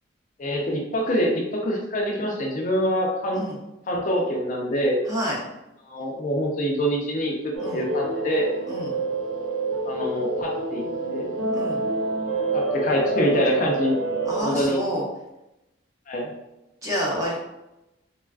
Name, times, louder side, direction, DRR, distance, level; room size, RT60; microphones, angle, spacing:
voice 1, 0.4-3.4 3.9-5.0 5.9-8.5 9.8-10.8 11.1-11.3 12.5-14.0 14.4-14.8 16.1-16.3, equal, 40° left, -1 dB, 0.4 m, -25 dB
voice 2, 5.1-5.4 7.6-7.8 8.7-9.0 11.5-11.8 14.3-15.0 16.8-17.5, equal, 15° right, -5 dB, 0.6 m, -28 dB
sound 1, 7.5-14.4, right 2 dB, 85° right, 0.6 m, -27 dB
3.3 x 2.2 x 2.3 m, 0.94 s
head